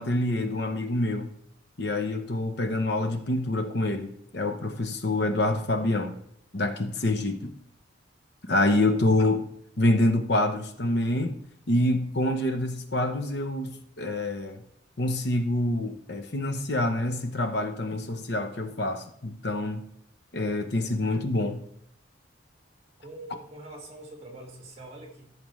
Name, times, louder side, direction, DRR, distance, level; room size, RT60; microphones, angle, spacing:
voice 1, 0.0-1.3 1.8-6.2 6.5-7.5 8.5-9.4 9.8-11.3 11.7-14.6 15.0-19.8 20.3-21.6, left 1 dB, 55° left, 7 dB, 0.8 m, -26 dB
voice 2, 23.0-25.3, right 1 dB, 30° right, 1 dB, 2.0 m, -44 dB
14.0 x 6.7 x 3.2 m, 0.72 s
head